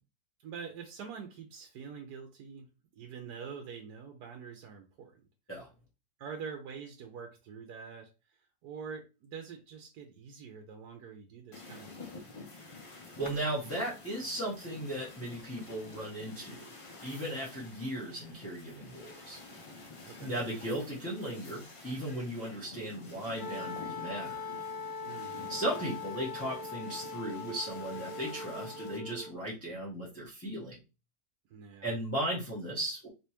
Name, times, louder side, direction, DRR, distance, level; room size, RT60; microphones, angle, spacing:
voice 1, 0.4-2.7 2.9-5.2 6.2-12.2 20.0-20.4 25.0-25.5 31.5-32.0, right 6 dB, 85° right, 1.2 m, -45 dB
sound 1, 11.5-29.0, left 3 dB, 50° left, 0.3 m, -50 dB
voice 2, 13.2-16.7 17.0-19.4 20.2-24.4 25.5-30.8 31.8-33.1, right 1 dB, 10° left, 0.9 m, -36 dB
Wind instrument woodwind instrument, 23.4-29.3, left 4 dB, 35° left, 1.1 m, -41 dB
3.3 x 3.0 x 2.8 m
omnidirectional pair, 1.7 m